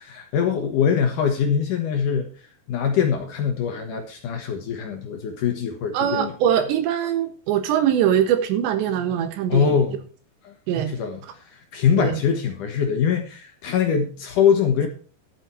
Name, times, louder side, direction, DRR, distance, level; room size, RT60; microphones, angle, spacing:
voice 1, 0.1-2.3 2.7-6.3 9.5-10.0 10.4-10.5 10.9-14.9, left 7 dB, 65° left, 2.2 m, -23 dB
voice 2, 5.9-9.8 10.7-11.0 12.0-12.2, right 9 dB, 90° right, 3.6 m, -22 dB
12.0 x 8.7 x 4.4 m
omnidirectional pair, 4.9 m